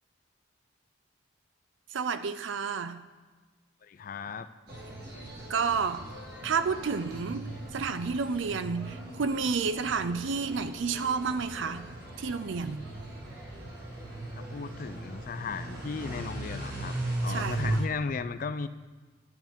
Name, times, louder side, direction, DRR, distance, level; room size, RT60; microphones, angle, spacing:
voice 1, 1.9-3.0 5.5-6.0 6.4-11.9 12.2-12.8 17.3-17.8, right 5 dB, 65° right, 12 dB, 0.5 m, -30 dB
voice 2, 3.8-4.5 14.3-16.9 17.2-18.7, left 5 dB, 40° left, 12 dB, 0.3 m, -35 dB
sound 1, 4.7-17.8, right 2 dB, 50° right, 1.7 m, -38 dB
10.5 x 9.0 x 3.6 m, 1.4 s
head